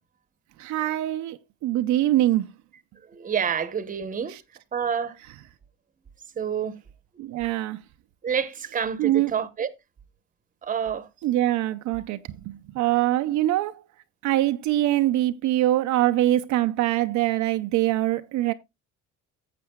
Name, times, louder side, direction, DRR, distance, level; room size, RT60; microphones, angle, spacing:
voice 1, 0.6-2.4 4.3-4.4 7.2-7.8 9.0-9.3 11.2-12.2 12.5-13.7 14.2-18.5, right 14 dB, 70° right, 0.7 m, -23 dB
voice 2, 3.1-4.4 4.7-5.1 6.4-6.8 8.2-9.7 10.6-11.1, right 7 dB, 25° right, 1.0 m, -28 dB
14.5 x 7.5 x 2.2 m
cardioid pair, 140°, 30 cm